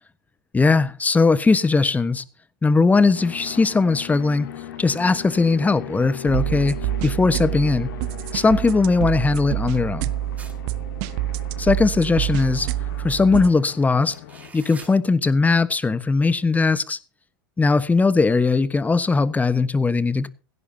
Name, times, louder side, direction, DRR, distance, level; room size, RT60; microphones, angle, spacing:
voice 1, 0.5-2.2 2.6-4.5 4.8-6.8 7.0-7.9 8.3-10.1 11.6-12.7 13.0-14.2 14.5-17.0 17.6-20.3, left 4 dB, 15° left, 1.2 m, -19 dB
sound 1, 3.1-14.5, left 10 dB, 70° left, 2.7 m, -39 dB
sound 2, 6.3-13.5, right 15 dB, 55° right, 0.9 m, -27 dB
sound 3, 10.4-10.9 13.3-13.4 13.9-14.9, right 4 dB, 15° right, 5.8 m, -44 dB
16.5 x 16.5 x 2.8 m
hypercardioid pair, 85°, 11 cm